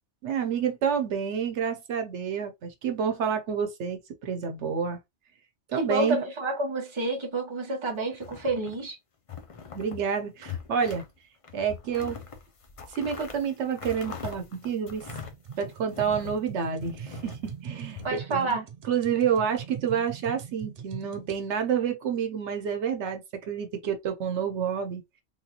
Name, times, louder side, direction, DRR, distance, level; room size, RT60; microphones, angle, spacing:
voice 1, 0.2-5.0 5.7-6.2 9.7-11.0 11.5-12.2 12.9-15.1 15.6-25.0, right 7 dB, 85° right, 1.0 m, -29 dB
voice 2, 5.7-9.0 18.0-18.6, right 2 dB, 25° right, 0.9 m, -29 dB
sound 1, 8.1-8.9 9.3-10.1 10.4-11.1 11.4-16.4 16.8-18.1, left 7 dB, 40° left, 0.5 m, -42 dB
sound 2, 15.1-21.4, right 7 dB, 50° right, 0.4 m, -42 dB
3.5 x 2.4 x 2.8 m
omnidirectional pair, 1.1 m